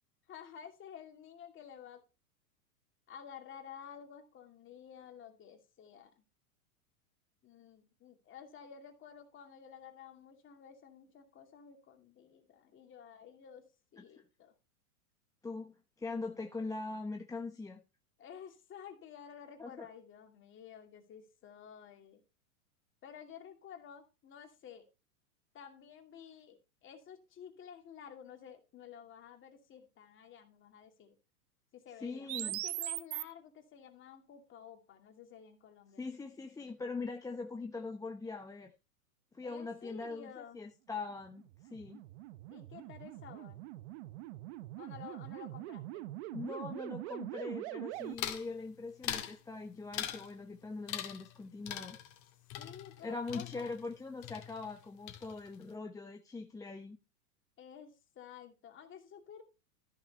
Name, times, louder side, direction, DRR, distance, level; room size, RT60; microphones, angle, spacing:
voice 1, 0.3-2.0 3.1-6.2 7.4-14.5 18.2-22.2 23.0-24.8 25.5-31.2 31.7-36.1 39.4-40.6 42.5-43.6 44.8-46.1 52.6-53.7 57.6-59.4, left 8 dB, 25° left, 2.6 m, -52 dB
voice 2, 15.4-17.8 19.6-19.9 32.0-32.6 36.0-38.7 39.3-42.0 46.3-52.0 53.0-57.0, left 3 dB, 10° left, 0.9 m, -42 dB
sound 1, 32.3-33.2 41.3-48.2, right 17 dB, 50° right, 0.8 m, -42 dB
sound 2, 48.2-48.5 49.0-49.4 49.9-50.3 50.9-51.4 51.7-54.0 54.2-54.8 55.1-55.6, left 11 dB, 40° left, 2.3 m, -41 dB
14.0 x 5.9 x 4.1 m
hypercardioid pair, 120°, 44 cm